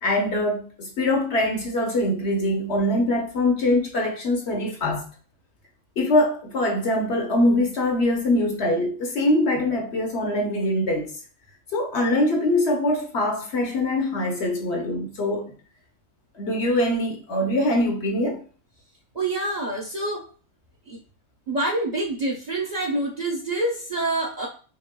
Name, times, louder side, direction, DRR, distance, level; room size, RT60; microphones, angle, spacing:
voice 1, 0.0-5.0 6.0-11.1 11.7-15.5 16.3-18.4, left 1 dB, 60° left, 1.1 m, -23 dB
voice 2, 19.1-20.2 20.9-21.0 21.5-24.5, right 2 dB, 35° right, 0.8 m, -26 dB
5.5 x 3.0 x 2.3 m
omnidirectional pair, 1.4 m